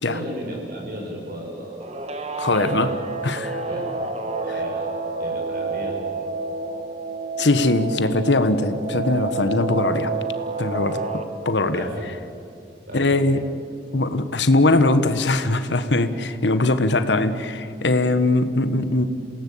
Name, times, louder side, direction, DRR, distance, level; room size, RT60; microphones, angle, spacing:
voice 1, 0.1-1.9 2.7-2.9 3.7-4.9 5.2-6.0 11.7-12.0 12.9-13.2, equal, 55° right, -1 dB, 5.5 m, -34 dB
Guitar, 1.8-11.2, right 3 dB, 40° right, 1.7 m, -29 dB
voice 2, 2.4-2.9 3.2-3.6 7.4-10.1 10.6-11.9 12.9-13.4 13.9-19.1, left 2 dB, 90° left, 11 dB, 1.4 m, -21 dB
28.0 x 17.5 x 8.6 m, 2.5 s
head